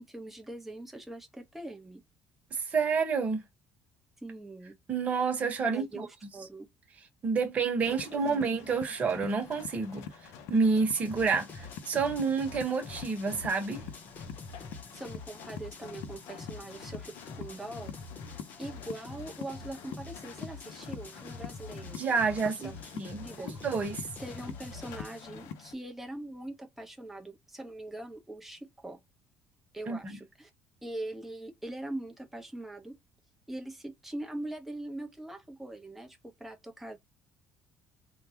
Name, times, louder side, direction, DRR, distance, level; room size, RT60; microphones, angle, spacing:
voice 1, 0.0-2.0 4.2-4.8 5.7-6.1 6.3-6.7 7.9-8.5 14.9-17.9 18.6-22.0 22.4-22.7 23.2-23.5 24.2-29.0 29.7-30.5 30.8-33.0 33.5-37.0, right 1 dB, 5° right, 1.1 m, -42 dB
voice 2, 2.5-3.4 4.9-6.1 7.2-13.8 21.9-22.5 22.9-24.1 29.9-30.2, right 5 dB, 30° right, 1.3 m, -29 dB
sound 1, 7.8-25.7, left 8 dB, 80° left, 0.9 m, -46 dB
sound 2, 11.0-25.3, left 3 dB, 35° left, 1.1 m, -46 dB
3.6 x 2.5 x 2.9 m
cardioid pair, 145°, 5 cm